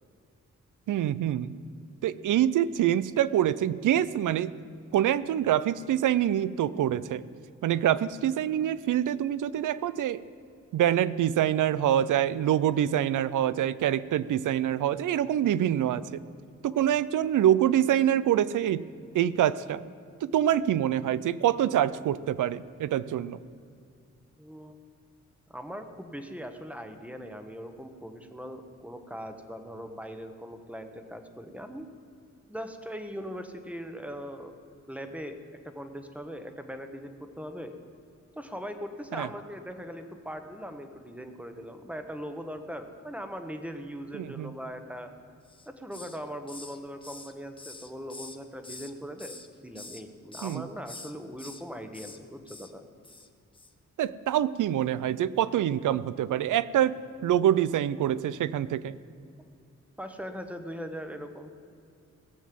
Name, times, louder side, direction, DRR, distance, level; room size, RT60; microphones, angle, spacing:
voice 1, 0.9-1.5 2.0-4.5 4.9-7.2 7.6-10.2 10.7-16.2 16.6-18.8 19.1-19.8 20.2-23.4 39.1-39.3 44.1-44.5 50.4-50.7 54.0-59.0, right 11 dB, 90° right, 17 dB, 0.5 m, -25 dB
voice 2, 24.4-24.8 25.5-31.9 32.5-34.5 34.9-35.4 35.6-37.7 38.4-45.1 45.7-52.8 60.0-61.5, equal, 5° right, 7 dB, 1.0 m, -40 dB
Hiss, 45.4-46.2 46.5-48.9 49.2-50.0 50.3-50.6 50.8-51.6 51.9-52.2 52.5-52.7 53.0-53.3 53.5-53.7, left 3 dB, 15° left, 0.8 m, -45 dB
17.5 x 7.4 x 7.6 m, 2.4 s
wide cardioid pair, 120°, 30 cm